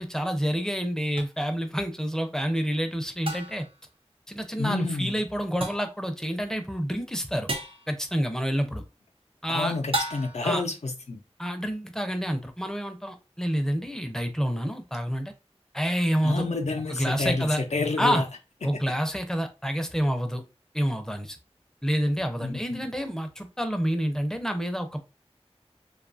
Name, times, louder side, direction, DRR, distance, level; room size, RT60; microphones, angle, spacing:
voice 1, 0.0-3.7 4.3-7.5 7.9-8.8 9.4-9.7 10.4-10.6 11.4-15.3 15.7-16.4 16.9-17.6 18.0-18.2 18.6-20.4 20.7-21.4 21.8-25.0, equal, 5° left, 0.5 m, -28 dB
sound 1, 1.2-1.3 3.3-3.8 5.6-6.0 7.5-7.9 9.9-10.6, right 1 dB, 55° right, 0.6 m, -32 dB
voice 2, 4.6-5.1 9.5-11.2 16.2-18.3 22.4-22.9, left 3 dB, 90° left, 0.5 m, -29 dB
2.6 x 2.3 x 2.5 m
wide cardioid pair, 40°, 11 cm